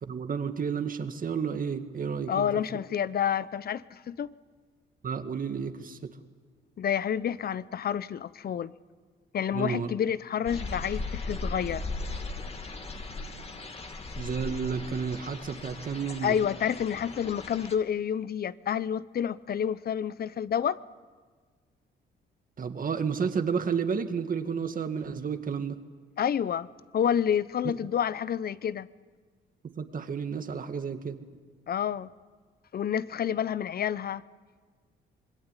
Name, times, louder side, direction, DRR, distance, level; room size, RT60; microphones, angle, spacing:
voice 1, 0.0-2.5 5.0-6.0 9.5-9.9 14.2-16.4 22.6-25.8 29.6-31.2, right 6 dB, 45° right, 2.0 m, -31 dB
voice 2, 2.3-4.3 6.8-8.7 9.3-11.8 16.2-20.8 26.2-26.7 26.9-28.9 31.7-32.1 32.7-34.2, left 8 dB, 50° left, 0.8 m, -29 dB
sound 1, 10.5-17.8, left 3 dB, 30° left, 2.5 m, -38 dB
26.0 x 21.5 x 9.8 m
cardioid pair, 90°, 20 cm